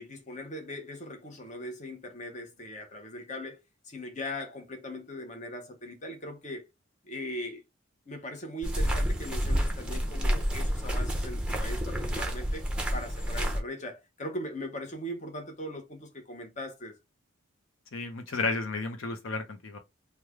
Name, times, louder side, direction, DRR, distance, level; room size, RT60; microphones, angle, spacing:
voice 1, 0.0-6.7 7.0-7.6 8.1-12.7 12.9-17.0, left 1 dB, 35° left, 0.8 m, -40 dB
sound 1, 8.6-13.6, equal, 5° right, 0.6 m, -29 dB
voice 2, 17.9-19.8, left 3 dB, 70° left, 0.6 m, -32 dB
3.2 x 2.2 x 3.5 m
head